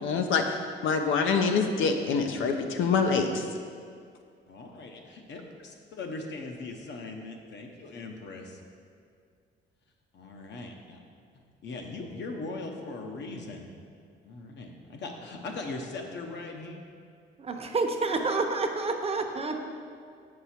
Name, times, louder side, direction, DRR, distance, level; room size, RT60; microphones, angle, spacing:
voice 1, 0.0-3.4, left 5 dB, 80° left, 5 dB, 0.7 m, -26 dB
voice 2, 4.5-8.6 10.1-11.0 11.6-13.7 14.2-16.8, left 3 dB, 65° left, 2 dB, 0.9 m, -40 dB
voice 3, 17.4-19.6, right 3 dB, 30° right, 4 dB, 0.7 m, -29 dB
6.6 x 5.6 x 4.4 m, 2.2 s
cardioid pair, 90°, 20 cm